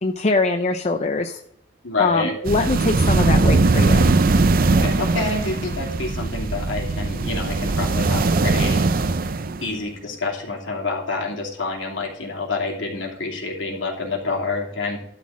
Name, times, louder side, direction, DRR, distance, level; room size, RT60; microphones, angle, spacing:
voice 1, 0.0-1.4 2.0-4.1, left 3 dB, 35° left, 5 dB, 0.6 m, -22 dB
voice 2, 1.8-2.3 4.6-8.8 9.6-15.0, left 3 dB, 70° left, -1 dB, 2.9 m, -27 dB
sound 1, 2.5-9.7, right 3 dB, 50° right, 0.5 m, -20 dB
12.0 x 4.1 x 7.3 m, 0.74 s
head